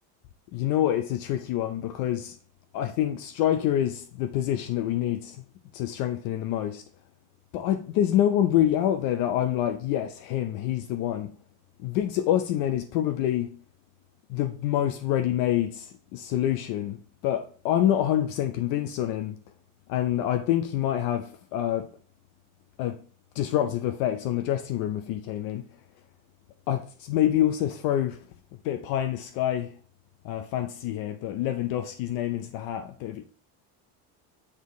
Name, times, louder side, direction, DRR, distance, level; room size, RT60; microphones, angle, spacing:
voice 1, 0.5-2.4 2.7-5.4 5.7-6.8 7.5-11.3 11.8-13.6 14.3-19.4 19.9-21.9 22.8-23.0 23.3-25.6 26.7-28.2 28.6-29.8 30.2-33.2, left 11 dB, 60° left, 0.6 m, -27 dB
7.4 x 4.2 x 3.1 m
cardioid pair, 180°, 41 cm